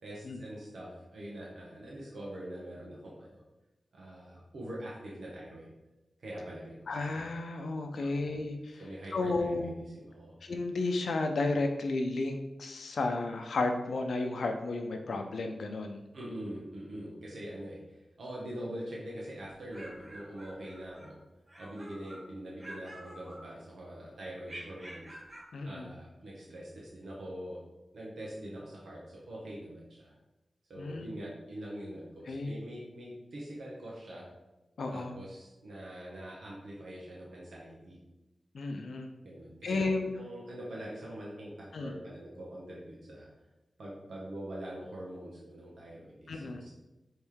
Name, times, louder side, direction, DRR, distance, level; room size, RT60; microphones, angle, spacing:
voice 1, 0.0-3.4 3.9-5.7 6.2-6.9 8.0-8.4 8.8-10.3 16.1-21.2 21.6-25.2 25.6-27.6 27.9-29.0 29.3-30.1 30.7-34.3 34.9-38.0 39.2-43.3 43.8-46.7, right 1 dB, 80° right, -5 dB, 1.0 m, -44 dB
voice 2, 6.9-8.8 9.1-9.7 10.4-16.0 25.5-25.9 30.8-31.1 32.3-32.5 34.8-35.1 38.5-39.1 39.6-40.1 41.7-41.9 46.3-46.6, left 3 dB, 85° left, 4 dB, 0.5 m, -33 dB
sound 1, 19.5-21.1 21.5-22.3 22.6-23.9 24.4-25.5, right 1 dB, 35° right, 1.0 m, -48 dB
4.6 x 3.2 x 3.5 m, 1.0 s
wide cardioid pair, 90°, 0 cm